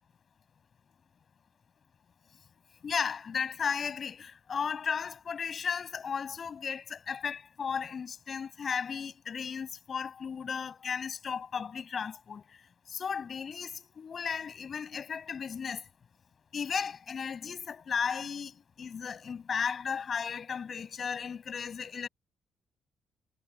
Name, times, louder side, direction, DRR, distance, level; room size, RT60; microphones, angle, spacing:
voice 1, 2.8-12.6 12.9-15.8 16.5-22.1, left 6 dB, 45° left, 7.8 m, -35 dB
cardioid pair, 90°, 0 cm